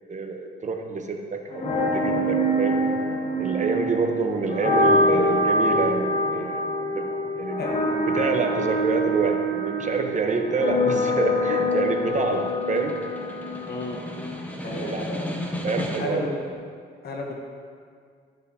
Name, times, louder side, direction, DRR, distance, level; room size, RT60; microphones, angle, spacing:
voice 1, 0.1-2.8 3.4-6.6 6.9-7.1 7.4-7.6 8.1-13.0 14.6-15.0 15.6-16.2, right 4 dB, 40° right, 4 dB, 0.9 m, -27 dB
sound 1, 1.5-14.4, equal, 30° left, 1.0 m, -25 dB
Snare drum, 11.4-16.3, left 1 dB, 5° left, 1.2 m, -35 dB
voice 2, 13.7-14.0 14.6-15.3 16.0-16.4 17.0-17.3, left 2 dB, 55° left, 0 dB, 1.2 m, -32 dB
13.5 x 6.4 x 2.8 m, 2.1 s
cardioid pair, 90°, 20 cm